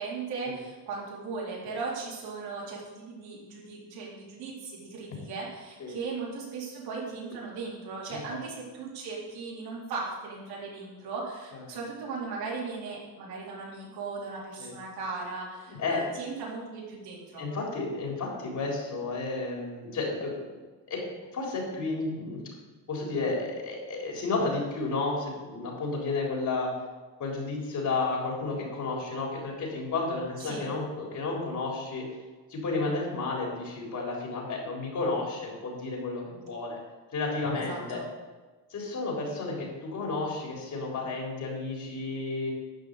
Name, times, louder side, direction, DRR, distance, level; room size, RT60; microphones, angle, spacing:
voice 1, 0.0-17.4 30.4-30.6 37.5-38.0, right 4 dB, 85° right, -4 dB, 4.1 m, -37 dB
voice 2, 15.7-16.0 17.4-20.3 20.9-21.0 21.3-22.4 22.9-26.7 27.2-32.1 32.5-36.8 37.1-38.0 38.7-42.5, left 3 dB, 50° left, -1 dB, 4.0 m, -32 dB
12.0 x 5.3 x 8.4 m, 1.3 s
cardioid pair, 120°, 37 cm